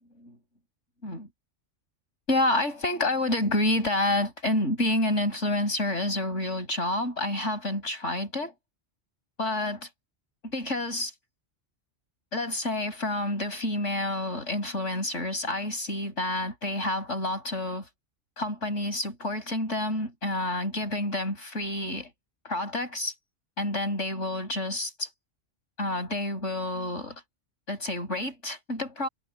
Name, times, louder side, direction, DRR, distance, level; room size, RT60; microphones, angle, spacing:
voice 1, 2.3-8.5 9.4-9.9 10.4-11.1 12.3-17.9 18.4-22.1 22.4-23.1 23.6-25.1 25.8-27.2 27.7-29.1, left 1 dB, 75° left, 6.3 m, -29 dB
omnidirectional pair, 1.3 m